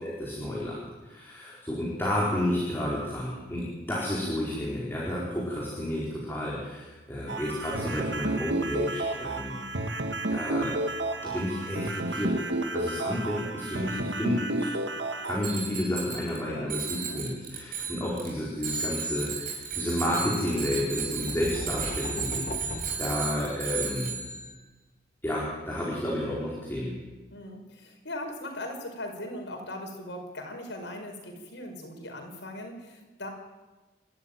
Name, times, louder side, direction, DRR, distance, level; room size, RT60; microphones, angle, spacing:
voice 1, 0.0-9.6 10.3-10.7 11.2-12.4 12.7-14.7 15.2-24.1 25.2-27.0, left 1 dB, 10° left, -5 dB, 4.6 m, -31 dB
sound 1, 7.3-15.4, right 2 dB, 80° right, 2.0 m, -31 dB
Bicycle bell, 15.4-16.4 16.7-18.3 18.6-24.5, right 6 dB, 50° right, 5.8 m, -34 dB
voice 2, 16.5-17.2 27.3-33.3, left 1 dB, 80° left, 3 dB, 5.6 m, -39 dB
sound 2, 20.9-23.8, left 1 dB, 45° left, 2.1 m, -39 dB
28.0 x 13.5 x 9.2 m, 1.2 s
head